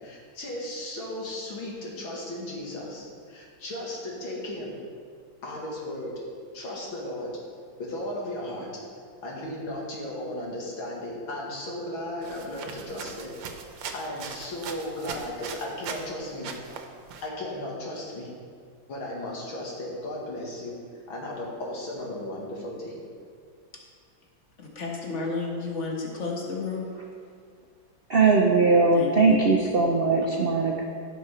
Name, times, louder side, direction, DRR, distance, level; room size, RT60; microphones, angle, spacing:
voice 1, 0.0-4.8 5.4-6.1 6.5-7.3 7.8-8.7 9.2-13.3 13.7-16.5 17.2-18.3 18.9-20.8 21.1-23.0, left 1 dB, 80° left, -3 dB, 2.8 m, -35 dB
sound 1, 12.2-16.1 16.4-17.3, right 6 dB, 70° right, 1.5 m, -39 dB
voice 2, 24.6-26.9 28.9-29.4 30.3-30.5, left 4 dB, 40° left, -1 dB, 1.7 m, -32 dB
voice 3, 28.1-30.8, right 4 dB, 50° right, -1 dB, 0.6 m, -20 dB
15.5 x 6.0 x 4.3 m, 2.1 s
omnidirectional pair, 2.2 m